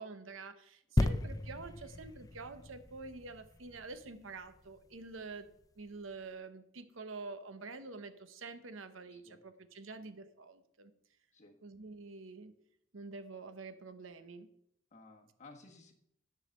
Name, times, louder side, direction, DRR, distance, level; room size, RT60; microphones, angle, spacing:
voice 1, 0.0-10.9 11.6-12.5 12.9-14.5, right 3 dB, 80° right, 10 dB, 0.9 m, -47 dB
sound 1, 1.0-4.6 5.2-5.3, left 2 dB, 20° left, 0.4 m, -35 dB
voice 2, 14.9-15.9, left 3 dB, 35° left, 2 dB, 1.4 m, -57 dB
10.0 x 4.8 x 6.5 m, 0.73 s
head